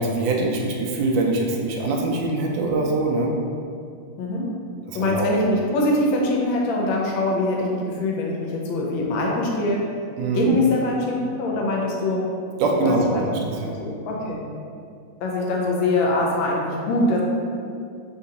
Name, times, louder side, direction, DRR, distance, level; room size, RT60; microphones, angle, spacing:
voice 1, 0.0-3.4 4.9-5.3 10.2-10.5 12.6-13.8, right 2 dB, 80° right, 0 dB, 1.2 m, -23 dB
voice 2, 4.2-4.5 4.9-9.8 10.3-12.3 12.8-13.2 13.8-14.4 15.2-17.2, left 2 dB, 85° left, -2 dB, 1.5 m, -23 dB
3.7 x 3.7 x 2.8 m, 2.4 s
omnidirectional pair, 2.1 m